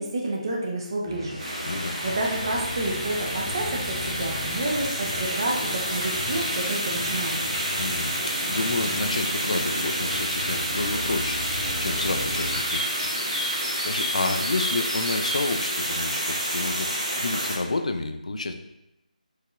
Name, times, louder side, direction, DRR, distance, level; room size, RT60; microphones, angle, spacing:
voice 1, 0.0-1.4 2.0-7.4, right 2 dB, 30° right, -1 dB, 0.5 m, -29 dB
sound 1, 1.0-12.6, left 1 dB, 15° left, 0.8 m, -36 dB
sound 2, 1.4-17.6, right 1 dB, 50° right, 1.0 m, -29 dB
voice 2, 7.8-13.0 13.7-16.9 17.1-18.5, left 2 dB, 55° left, 6 dB, 0.4 m, -30 dB
sound 3, 12.4-15.4, left 1 dB, 80° left, 1.1 m, -32 dB
4.6 x 2.7 x 2.4 m, 0.89 s
figure-of-eight pair, 155°, 5 cm